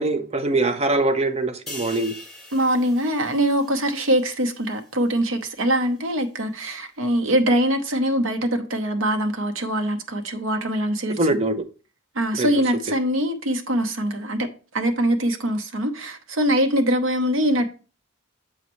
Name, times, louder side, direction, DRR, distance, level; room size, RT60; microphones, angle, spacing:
voice 1, 0.0-2.1 11.2-11.6 12.4-12.5, right 2 dB, 30° right, 0.6 m, -22 dB
sound 1, 1.7-5.2 5.6-5.8, left 1 dB, ahead, 3.7 m, -42 dB
voice 2, 2.5-11.4 12.1-14.5 14.7-17.7, equal, 70° right, 0.9 m, -23 dB
7.3 x 5.3 x 3.1 m
head